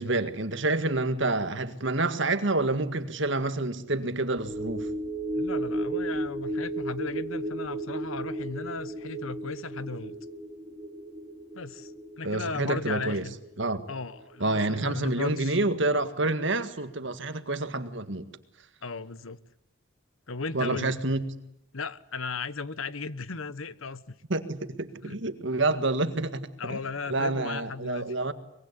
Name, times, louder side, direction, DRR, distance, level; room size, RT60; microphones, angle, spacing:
voice 1, 0.0-4.9 12.2-13.2 13.6-13.8 14.4-18.3 20.5-21.2 24.3-26.8 27.1-28.3, right 2 dB, 60° right, 1.9 m, -28 dB
sound 1, 4.4-15.0 15.3-15.5, right 1 dB, 20° right, 2.7 m, -35 dB
voice 2, 5.3-10.2 11.5-11.9 12.2-13.4 13.9-15.6 18.8-19.4 20.3-21.0 21.7-24.2 25.0-25.1 26.6-28.1, left 4 dB, 75° left, 1.2 m, -36 dB
24.0 x 22.5 x 9.8 m
head